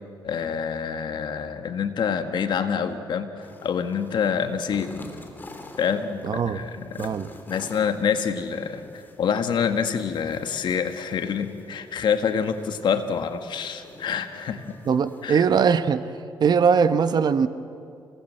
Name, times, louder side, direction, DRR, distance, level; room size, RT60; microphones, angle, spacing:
voice 1, 0.2-4.9 5.8-7.2 7.5-14.8 15.2-15.4, left 7 dB, 70° left, 8 dB, 1.7 m, -27 dB
sound 1, 3.4-15.4, left 2 dB, 25° left, 3.1 m, -47 dB
voice 2, 6.2-6.6 7.0-7.3 14.9-16.1 16.4-17.5, right 6 dB, 60° right, 11 dB, 1.1 m, -20 dB
28.0 x 18.5 x 7.9 m, 2.5 s
cardioid pair, 95°, 8 cm